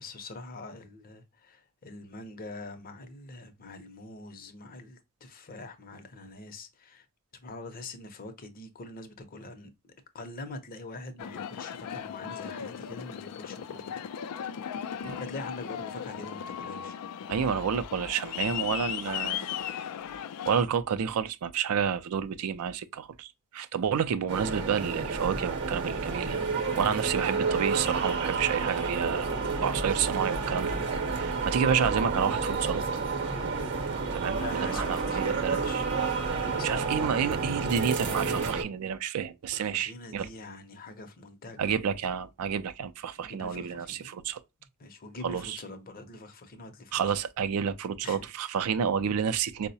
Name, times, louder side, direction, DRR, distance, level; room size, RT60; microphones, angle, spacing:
voice 1, 0.0-7.0 7.4-9.7 10.1-14.3 15.0-17.0 34.3-36.0 36.4-36.8 39.5-41.8 43.2-44.2 44.8-47.0 48.0-48.3, left 2 dB, 40° left, 0.6 m, -44 dB
Aircraft, 11.2-20.6, left 9 dB, 90° left, 0.3 m, -37 dB
voice 2, 17.3-19.6 20.5-26.4 26.8-29.3 29.6-30.8 31.1-32.8 34.1-35.8 36.6-40.3 41.6-44.4 45.2-45.6 46.9-49.7, right 7 dB, 75° right, 0.4 m, -30 dB
sound 1, 24.3-38.6, right 4 dB, 55° right, 0.8 m, -30 dB
4.5 x 2.0 x 2.6 m
head